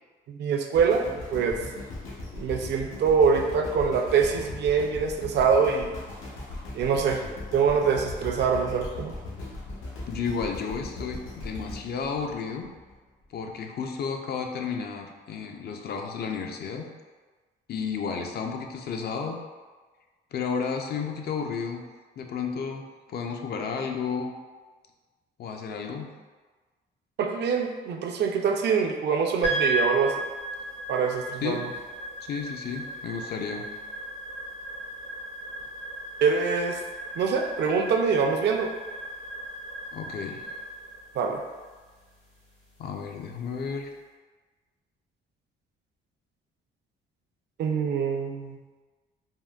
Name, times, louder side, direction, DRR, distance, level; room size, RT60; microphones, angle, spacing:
voice 1, 0.3-1.6 2.3-6.0 6.7-7.2 7.5-9.1 27.2-30.1 30.9-31.7 36.2-36.8 37.2-38.7 41.2-41.4 47.6-48.6, right 6 dB, 60° right, 3 dB, 0.4 m, -24 dB
sound 1, 0.8-13.0 13.5-13.6, left 2 dB, 85° left, 0.8 m, -39 dB
voice 2, 10.1-12.7 13.3-16.9 17.7-19.4 20.3-21.8 22.2-24.3 25.4-26.1 29.5-29.6 31.4-31.6 32.2-33.7 39.9-40.4 42.8-43.9, left 6 dB, 55° left, 3 dB, 0.4 m, -32 dB
sound 2, 29.4-43.8, right 1 dB, 70° left, 1.3 m, -36 dB
3.6 x 2.1 x 2.3 m, 1.3 s
cardioid pair, 90°, 20 cm